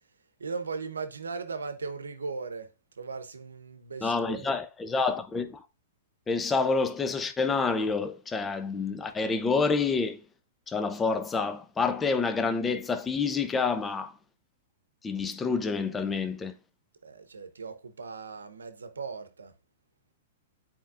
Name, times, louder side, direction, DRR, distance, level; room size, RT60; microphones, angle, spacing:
voice 1, 0.4-4.5 17.0-19.5, right 4 dB, 85° right, 0.9 m, -38 dB
voice 2, 4.0-5.6 6.3-10.2 10.7-14.1 15.0-16.5, left 4 dB, 15° left, 0.7 m, -28 dB
10.0 x 4.4 x 2.5 m
hypercardioid pair, 115°, 0 cm